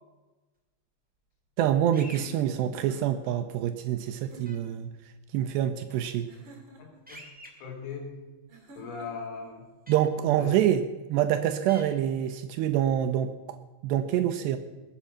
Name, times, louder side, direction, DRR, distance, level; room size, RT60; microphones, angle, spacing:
voice 1, 1.6-4.9 5.3-6.3 9.9-10.8 11.1-13.3 13.8-14.6, right 11 dB, 85° right, 8 dB, 2.6 m, -26 dB
sound 1, 1.9-2.2 4.4-4.6 7.1-7.5 9.9-10.0 11.7-11.8, equal, 10° right, 0.5 m, -45 dB
sound 2, 2.1-3.3 4.2-4.8 6.3-7.0 8.5-9.3, right 2 dB, 30° right, 2.8 m, -51 dB
voice 2, 6.8-7.2 7.6-8.2 8.8-9.7 10.4-10.5, left 5 dB, 85° left, 1 dB, 5.6 m, -39 dB
20.5 x 9.0 x 5.6 m, 1.2 s
omnidirectional pair, 5.4 m